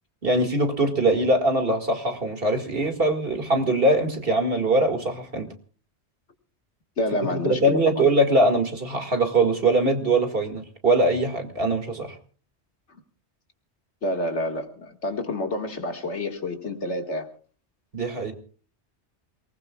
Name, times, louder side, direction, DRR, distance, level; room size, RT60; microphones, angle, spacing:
voice 1, 0.2-5.5 7.3-12.2 17.9-18.3, right 2 dB, 55° right, 2.3 m, -22 dB
voice 2, 7.0-8.1 14.0-17.3, left 1 dB, 85° left, 2.2 m, -28 dB
28.0 x 19.5 x 2.4 m
omnidirectional pair, 1.1 m